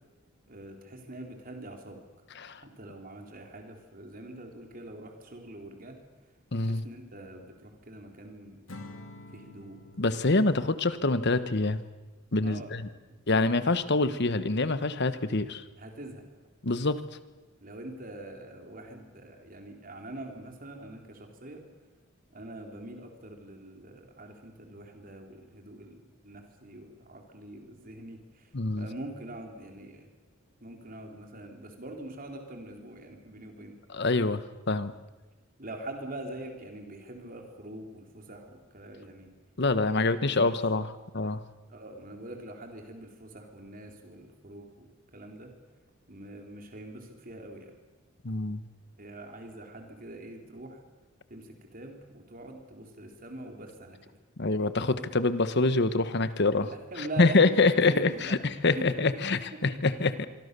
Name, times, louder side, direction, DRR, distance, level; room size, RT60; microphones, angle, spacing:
voice 1, 0.5-2.0 2.6-6.0 6.6-8.6 9.3-9.8 12.4-12.7 13.1-13.2 15.8-16.2 17.6-21.6 22.3-28.5 28.8-30.1 30.6-33.8 35.6-39.3 39.9-40.6 41.7-45.5 46.1-47.7 49.0-50.8 51.3-54.0 56.6-57.5 57.9-58.4 58.7-58.9 59.9-60.1, right 1 dB, 45° right, 3 dB, 3.9 m, -44 dB
voice 2, 6.5-6.8 10.0-11.8 12.3-12.8 13.3-15.6 16.6-17.0 28.5-28.9 33.9-34.4 34.7-34.9 39.6-41.4 48.2-48.6 54.4-56.7 57.2-60.3, left 3 dB, 55° left, 12 dB, 1.3 m, -25 dB
Acoustic guitar / Strum, 8.7-12.0, left 2 dB, 85° left, 2.5 m, -49 dB
25.0 x 24.0 x 6.9 m, 1.2 s
head